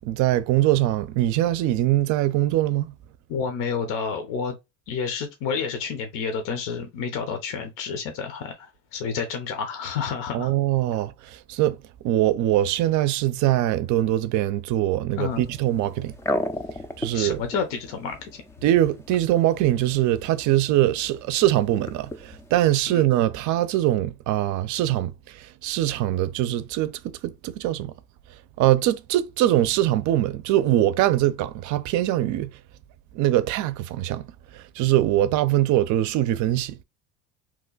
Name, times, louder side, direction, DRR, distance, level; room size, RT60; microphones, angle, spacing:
voice 1, 0.0-2.9 10.3-11.1 11.5-11.8 12.0-16.1 17.0-17.4 18.6-25.1 25.6-27.9 28.6-32.5 33.1-34.2 34.8-36.8, right 14 dB, 55° right, 0.5 m, -22 dB
voice 2, 3.3-4.5 4.9-10.5 15.2-15.4 17.1-18.4 22.9-23.0, left 6 dB, 65° left, 0.8 m, -30 dB
sound 1, 15.3-22.7, left 1 dB, 10° left, 0.3 m, -36 dB
3.0 x 2.2 x 3.8 m
supercardioid pair, 95°, 35 cm